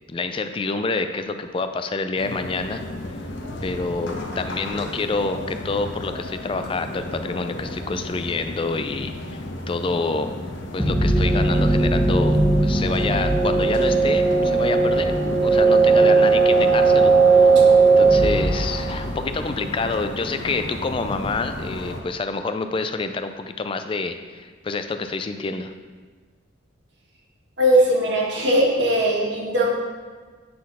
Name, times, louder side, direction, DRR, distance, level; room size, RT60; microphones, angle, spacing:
voice 1, 0.1-2.8 3.6-10.3 10.7-17.6 18.0-25.7, left 3 dB, 25° left, 8 dB, 0.3 m, -28 dB
sound 1, 2.2-22.0, left 1 dB, 65° left, 0.9 m, -33 dB
sound 2, 10.8-19.4, right 3 dB, 5° right, 1.0 m, -17 dB
voice 2, 27.6-29.6, right 1 dB, 65° right, -4 dB, 1.8 m, -19 dB
8.5 x 4.0 x 5.6 m, 1.5 s
head